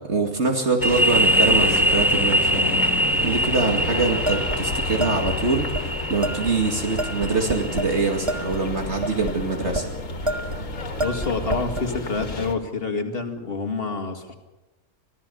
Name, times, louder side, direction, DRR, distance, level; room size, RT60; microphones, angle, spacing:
voice 1, 0.0-2.8 3.2-9.9, right 3 dB, 60° right, 2 dB, 2.6 m, -24 dB
sound 1, 0.8-12.6, left 3 dB, 85° left, 2.3 m, -31 dB
sound 2, 0.8-8.3, right 1 dB, ahead, 0.7 m, -23 dB
sound 3, 4.3-5.4 5.7-5.8 6.2-6.6 7.0-8.0 8.3-9.9 10.3-10.6 11.0-11.9, right 1 dB, 25° right, 1.6 m, -29 dB
voice 2, 11.0-14.3, left 4 dB, 50° left, 5 dB, 2.3 m, -28 dB
25.5 x 16.0 x 7.0 m, 1.1 s
omnidirectional pair, 1.3 m